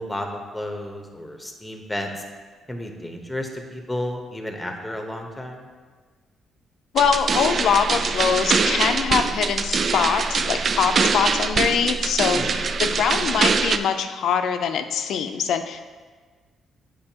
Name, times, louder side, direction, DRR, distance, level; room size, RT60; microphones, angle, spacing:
voice 1, 0.0-2.1 2.7-5.7 12.3-12.6, left 1 dB, 5° left, 3 dB, 1.0 m, -32 dB
voice 2, 6.9-15.8, left 7 dB, 75° left, 7 dB, 0.5 m, -23 dB
sound 1, 7.0-13.8, right 5 dB, 50° right, 0.3 m, -23 dB
8.6 x 5.2 x 2.9 m, 1.4 s
cardioid pair, 90°, 0 cm